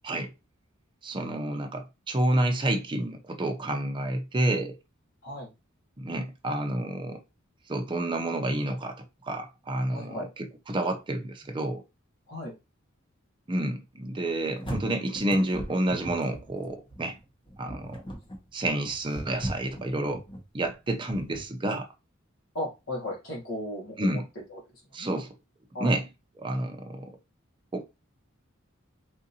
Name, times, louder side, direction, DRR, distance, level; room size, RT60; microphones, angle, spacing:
voice 1, 1.0-4.8 6.0-7.2 7.7-11.8 13.5-17.2 17.6-18.0 18.5-20.2 20.5-21.9 24.0-24.3 24.9-25.3 25.8-26.1 26.4-27.2 27.7-27.8, right 1 dB, 25° right, 0.5 m, -29 dB
voice 2, 9.9-10.3 12.3-12.5 22.5-24.2 24.5-24.6 25.0-25.1 25.7-25.9, left 1 dB, 75° left, 1.2 m, -35 dB
sound 1, 14.3-21.4, right 1 dB, 25° left, 0.9 m, -38 dB
3.7 x 2.6 x 2.7 m
head